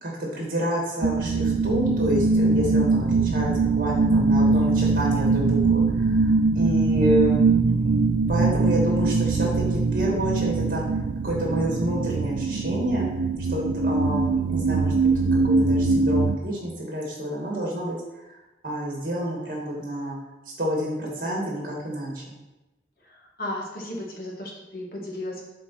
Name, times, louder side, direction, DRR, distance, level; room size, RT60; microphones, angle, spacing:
voice 1, 0.0-7.4 8.3-11.0 11.2-13.0 13.5-14.9 15.3-17.9 18.6-20.1 20.6-22.3, equal, 50° right, -2 dB, 2.4 m, -28 dB
sound 1, 1.0-16.4, right 3 dB, 85° right, 0.5 m, -22 dB
voice 2, 23.0-25.4, left 1 dB, 55° left, -2 dB, 1.8 m, -35 dB
7.4 x 4.3 x 5.9 m, 1.0 s
head